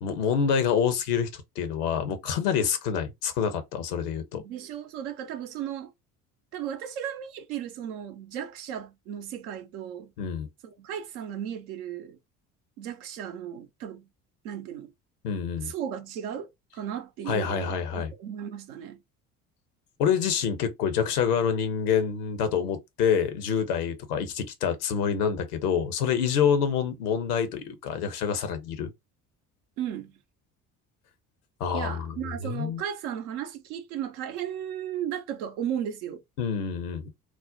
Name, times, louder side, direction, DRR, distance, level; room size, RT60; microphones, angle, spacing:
voice 1, 0.0-4.4 10.2-10.5 15.2-15.7 17.3-18.1 20.0-28.9 31.6-32.2 32.4-32.8 36.4-37.1, left 7 dB, 80° left, 0.7 m, -27 dB
voice 2, 4.4-5.9 6.5-10.1 10.6-12.2 12.8-14.1 14.4-14.9 15.6-19.0 29.8-30.2 31.7-36.2, right 9 dB, 70° right, 0.7 m, -35 dB
2.4 x 2.1 x 3.6 m
figure-of-eight pair, 55°, 46 cm